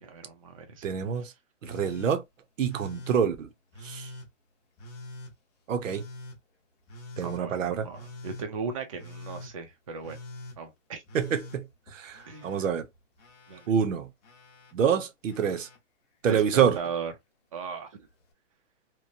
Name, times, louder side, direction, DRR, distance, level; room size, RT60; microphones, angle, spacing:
voice 1, 0.0-0.9 7.2-10.2 10.6-11.0 12.3-12.7 13.5-13.6 16.3-17.1 17.5-17.9, right 5 dB, 30° right, 0.4 m, -37 dB
voice 2, 0.8-1.3 1.6-2.2 2.6-3.5 3.8-4.1 5.7-6.0 7.2-7.9 11.1-11.6 11.9-12.9 13.7-14.1 14.7-15.7 16.2-16.8, right 7 dB, 90° right, 0.7 m, -26 dB
Telephone, 1.6-2.2 2.7-3.2 3.7-4.3 4.8-5.3 5.8-6.4 6.9-7.4 7.9-8.5 9.0-9.5 10.0-10.6 11.1-12.6 12.9-13.7 14.2-14.7 15.3-15.8 16.3-16.8 18.0-18.1, left 1 dB, 30° left, 0.7 m, -45 dB
2.9 x 2.1 x 2.5 m
hypercardioid pair, 155°, 37 cm